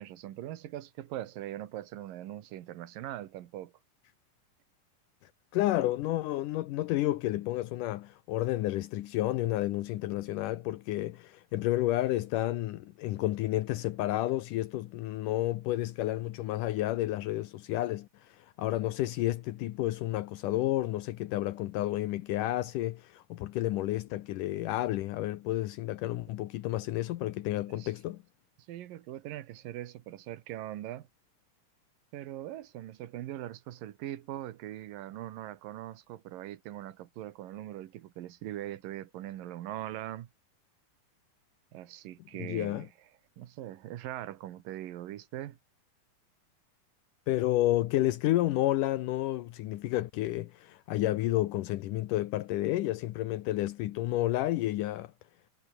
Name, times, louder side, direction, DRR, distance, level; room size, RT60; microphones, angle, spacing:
voice 1, 0.0-3.7 27.7-27.9 28.7-31.1 32.1-40.3 41.7-42.9 43.4-45.6, right 13 dB, 85° right, 3.0 m, -41 dB
voice 2, 5.5-28.2 42.4-42.8 47.3-55.1, left 15 dB, 80° left, 2.4 m, -31 dB
omnidirectional pair, 3.8 m